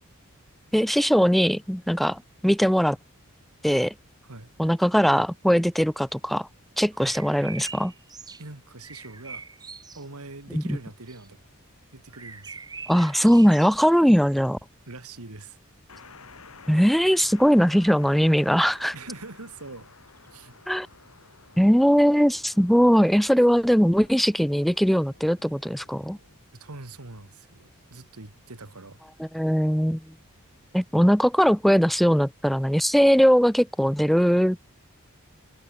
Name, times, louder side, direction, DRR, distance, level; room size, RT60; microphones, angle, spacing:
voice 1, 0.7-3.0 3.6-3.9 4.6-6.5 6.8-7.9 10.5-10.8 12.9-14.6 16.7-18.9 20.7-20.9 21.6-26.2 29.2-30.0 30.7-34.6, equal, ahead, 0.4 m, -20 dB
sound 1, 7.0-8.5 8.8-10.1 11.0-11.3 12.1-14.6 15.0-15.1 17.2-17.4 20.1-20.3, right 4 dB, 20° right, 1.4 m, -44 dB
voice 2, 8.4-9.5 9.9-11.4 11.9-12.6 14.0-14.1 14.9-15.6 18.9-19.9 20.3-20.5 26.5-29.0, right 3 dB, 80° right, 2.1 m, -43 dB
sound 2, 15.9-26.4, left 4 dB, 70° left, 2.3 m, -51 dB
head